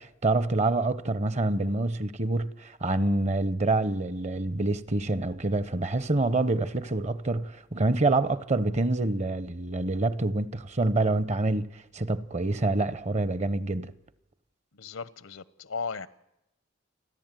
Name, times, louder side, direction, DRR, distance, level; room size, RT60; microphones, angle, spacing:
voice 1, 0.0-13.9, right 2 dB, 35° right, 0.8 m, -27 dB
voice 2, 14.7-16.1, left 5 dB, 85° left, 0.9 m, -36 dB
28.5 x 11.0 x 9.1 m
head